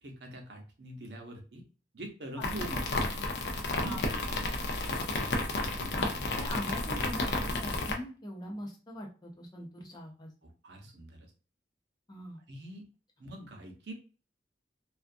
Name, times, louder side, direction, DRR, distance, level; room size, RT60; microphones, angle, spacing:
voice 1, 0.0-1.6 1.9-3.1 3.5-4.0 4.3-4.5 4.9-5.1 5.5-6.1 10.4-11.3 12.5-12.8 13.2-13.9, right 1 dB, 70° right, 3 dB, 0.7 m, -44 dB
sound 1, 2.4-7.9, left 2 dB, 70° left, 0.5 m, -32 dB
voice 2, 5.9-10.3 12.1-12.4, equal, 25° left, 0 dB, 0.7 m, -41 dB
2.4 x 2.3 x 2.5 m, 0.36 s
head